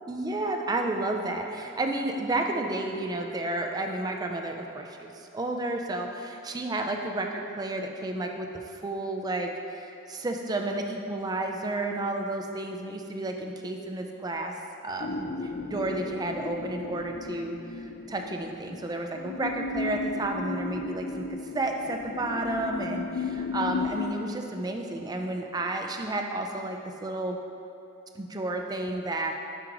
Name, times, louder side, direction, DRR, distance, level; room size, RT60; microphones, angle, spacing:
voice 1, 0.1-14.5 14.8-27.4 28.1-29.3, right 2 dB, 20° right, 3 dB, 0.4 m, -31 dB
sound 1, 15.0-24.1, left 4 dB, 50° left, 0.4 m, -35 dB
7.5 x 4.8 x 3.0 m, 2.7 s
head